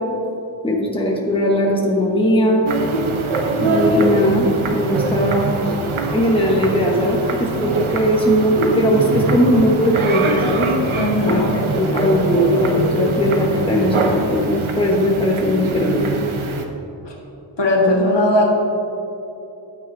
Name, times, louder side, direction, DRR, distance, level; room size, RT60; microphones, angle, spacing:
voice 1, 0.6-2.6 3.6-5.5 6.1-10.7 11.3-16.1, equal, 10° left, -2 dB, 1.3 m, -18 dB
sound 1, 2.7-16.7, right 3 dB, 85° right, 0.9 m, -23 dB
voice 2, 11.0-11.5 17.1-17.2 17.6-18.5, left 1 dB, 60° left, -2 dB, 1.8 m, -17 dB
11.5 x 9.0 x 2.7 m, 2.9 s
wide cardioid pair, 60°, 48 cm